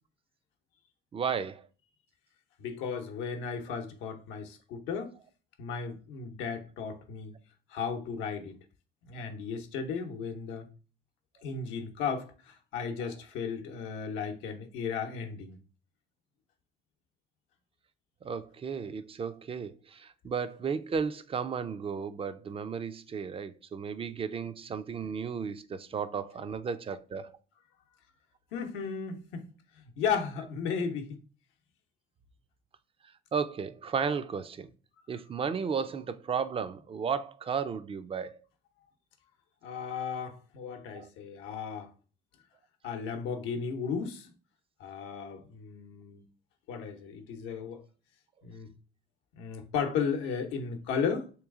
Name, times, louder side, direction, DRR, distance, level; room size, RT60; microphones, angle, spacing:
voice 1, 1.1-1.7 18.2-27.4 33.3-34.7 35.1-38.4 40.9-41.1, right 6 dB, 30° right, 0.4 m, -34 dB
voice 2, 2.6-5.1 5.6-7.3 7.7-8.6 9.0-10.7 11.4-15.6 28.5-29.5 29.8-31.2 39.6-41.9 42.8-44.3 44.8-46.2 46.7-47.8 48.4-48.7 49.4-51.3, left 6 dB, 80° left, 0.8 m, -35 dB
3.1 x 3.0 x 3.6 m
supercardioid pair, 80°, 19 cm